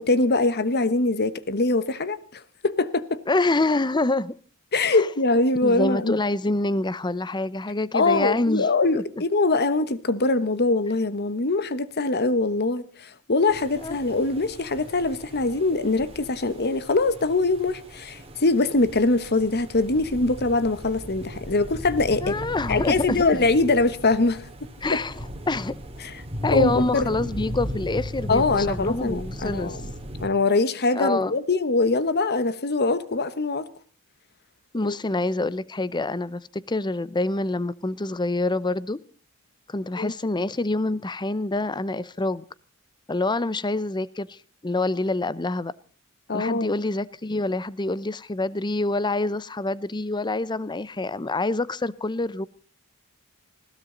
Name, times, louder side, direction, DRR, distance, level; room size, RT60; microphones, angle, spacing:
voice 1, 0.0-3.2 4.7-6.1 7.9-22.4 22.7-25.0 26.0-26.1 26.5-27.1 28.3-29.8 30.2-33.6 34.8-35.0 40.0-40.1 46.3-46.7, left 3 dB, 50° left, 1.2 m, -23 dB
voice 2, 3.3-4.3 4.9-5.1 5.6-8.7 13.8-14.0 22.2-23.5 24.8-25.7 26.4-29.8 31.0-31.3 34.7-39.0 39.7-42.4 43.1-45.7 46.3-52.5, left 2 dB, 20° left, 0.7 m, -26 dB
sound 1, 13.5-30.3, equal, 25° right, 2.4 m, -36 dB
20.5 x 16.0 x 3.9 m
head